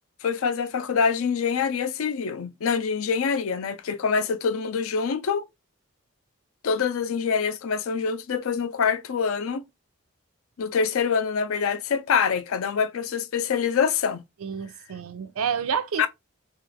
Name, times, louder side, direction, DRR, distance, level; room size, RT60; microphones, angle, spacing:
voice 1, 0.2-5.5 6.6-9.6 10.6-14.2 16.0-16.1, left 6 dB, 80° left, 0.4 m, -25 dB
voice 2, 14.4-16.1, right 7 dB, 90° right, 0.4 m, -29 dB
3.0 x 2.4 x 2.7 m
head